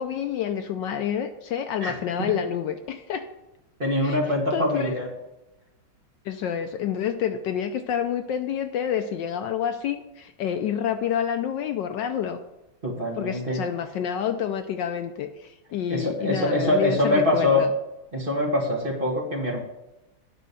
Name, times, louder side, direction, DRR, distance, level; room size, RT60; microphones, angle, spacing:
voice 1, 0.0-3.3 4.0-4.2 4.5-5.0 6.2-12.4 13.1-17.7, left 8 dB, 75° left, 8 dB, 1.2 m, -28 dB
voice 2, 1.8-2.3 3.8-5.1 12.8-13.6 15.9-17.6 18.1-19.6, left 1 dB, 25° right, -2 dB, 1.8 m, -24 dB
10.0 x 5.2 x 6.8 m, 0.96 s
omnidirectional pair, 2.2 m